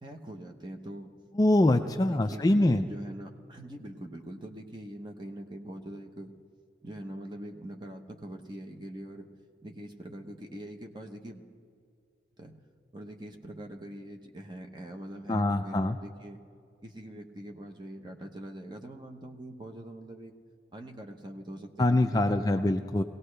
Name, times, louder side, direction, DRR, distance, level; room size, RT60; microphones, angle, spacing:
voice 1, 0.0-1.1 2.0-6.3 6.8-9.3 9.6-11.5 12.4-12.6 12.9-16.4 16.8-20.3 20.7-22.8, right 1 dB, 25° right, 3 dB, 1.0 m, -43 dB
voice 2, 1.4-2.8 15.3-16.0 21.8-23.0, left 1 dB, 20° left, 7 dB, 0.3 m, -24 dB
21.5 x 17.5 x 3.3 m, 2.3 s
head